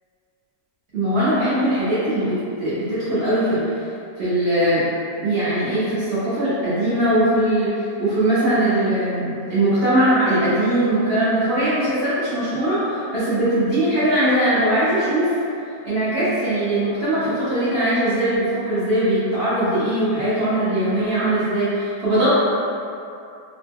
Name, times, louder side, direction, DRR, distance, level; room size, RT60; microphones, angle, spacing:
voice 1, 0.9-3.7 4.2-4.8 5.2-15.3 15.8-22.3, right 1 dB, 50° right, -13 dB, 0.7 m, -20 dB
3.0 x 2.0 x 3.4 m, 2.6 s
omnidirectional pair, 1.8 m